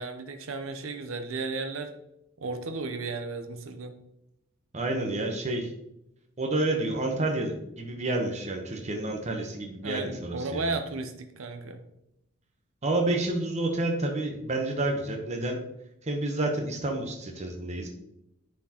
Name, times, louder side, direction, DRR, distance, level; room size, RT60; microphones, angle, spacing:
voice 1, 0.0-1.9 2.4-3.9 9.8-11.8, right 3 dB, 80° right, 7 dB, 0.7 m, -34 dB
voice 2, 4.7-5.7 6.4-10.7 12.8-15.6 16.0-17.9, right 2 dB, 35° right, 2 dB, 0.9 m, -29 dB
9.7 x 4.4 x 2.9 m, 0.82 s
head